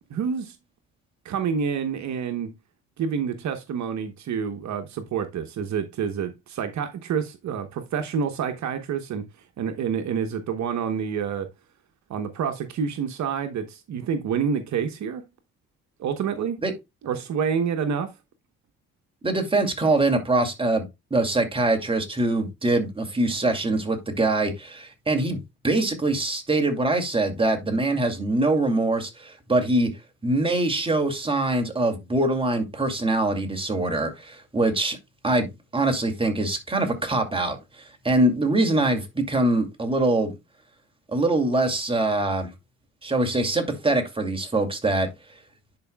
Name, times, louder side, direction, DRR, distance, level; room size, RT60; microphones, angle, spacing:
voice 1, 0.1-0.6 1.2-2.5 3.0-9.3 9.6-11.5 12.1-15.2 16.0-16.6 17.0-18.1, right 7 dB, 65° right, 1.0 m, -28 dB
voice 2, 19.2-25.4 25.6-29.9 30.2-35.0 35.2-37.6 38.0-40.3 41.1-42.5 43.0-45.1, right 2 dB, 15° right, 2.5 m, -23 dB
10.5 x 4.8 x 2.2 m
cardioid pair, 90°, 30 cm